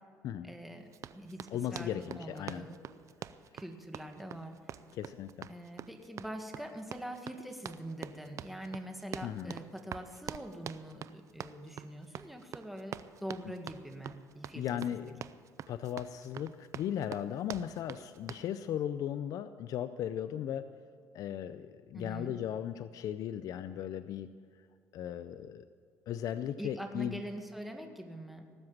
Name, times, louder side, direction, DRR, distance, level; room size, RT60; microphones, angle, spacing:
voice 1, 0.4-2.8 3.5-4.6 5.5-15.0 21.9-22.3 26.6-28.4, right 1 dB, ahead, 4 dB, 2.0 m, -44 dB
Run, 0.9-18.5, right 9 dB, 55° right, 0.5 m, -45 dB
voice 2, 1.5-2.7 4.9-5.5 9.2-9.6 14.5-15.2 15.7-20.6 21.1-24.3 24.9-25.6 26.1-27.2, left 10 dB, 65° left, 12 dB, 0.5 m, -37 dB
18.5 x 7.9 x 7.3 m, 2.2 s
cardioid pair, 95°, 7 cm